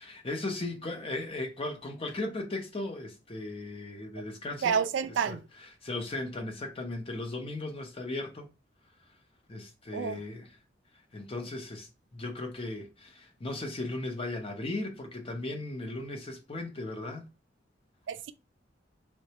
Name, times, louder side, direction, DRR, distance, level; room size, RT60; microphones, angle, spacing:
voice 1, 0.0-4.8 5.3-5.4 5.8-8.5 9.5-10.5 11.1-17.3, left 2 dB, 30° left, 0.6 m, -37 dB
voice 2, 4.6-5.5 9.9-10.2 18.1-18.3, right 7 dB, 75° right, 0.3 m, -29 dB
4.0 x 2.2 x 2.8 m
head